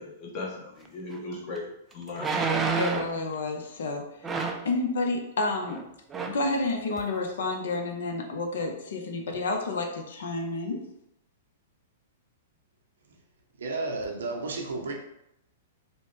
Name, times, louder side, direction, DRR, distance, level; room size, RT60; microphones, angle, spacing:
voice 1, 0.0-1.6 1.9-2.6, left 3 dB, 40° left, -2 dB, 0.9 m, -37 dB
sound 1, 1.1-1.2 2.2-3.2 4.2-4.7 5.7-5.8 6.1-6.5 7.0-7.1, right 4 dB, 15° right, 0.3 m, -29 dB
voice 2, 2.8-4.0 4.6-5.8 6.3-10.8, left 2 dB, 70° left, 3 dB, 0.5 m, -30 dB
voice 3, 13.6-14.9, right 3 dB, 75° right, 1 dB, 0.6 m, -32 dB
2.8 x 2.0 x 3.1 m, 0.80 s
hypercardioid pair, 115°, 0 cm